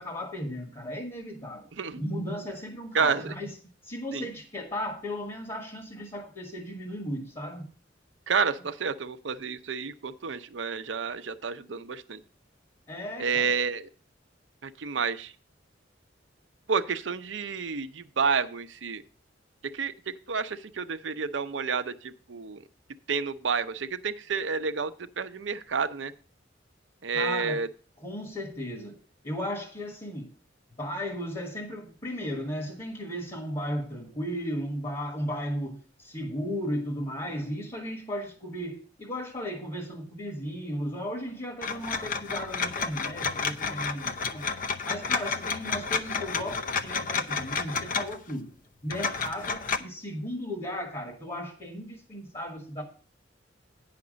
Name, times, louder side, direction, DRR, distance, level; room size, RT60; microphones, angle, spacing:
voice 1, 0.0-1.7 1.9-3.5 3.8-7.7 12.9-13.5 27.1-27.6 28.0-29.0 29.2-30.3 30.8-44.4 44.8-48.5 48.8-52.8, equal, 30° left, 1.5 m, -35 dB
voice 2, 2.9-3.3 4.1-4.3 8.3-12.2 13.2-13.9 14.6-15.3 16.7-19.0 19.6-22.6 23.1-26.1 27.0-27.7, right 5 dB, 75° right, 0.7 m, -30 dB
sound 1, 41.6-48.3 48.9-49.8, left 5 dB, 45° left, 0.7 m, -31 dB
9.7 x 5.9 x 5.1 m
head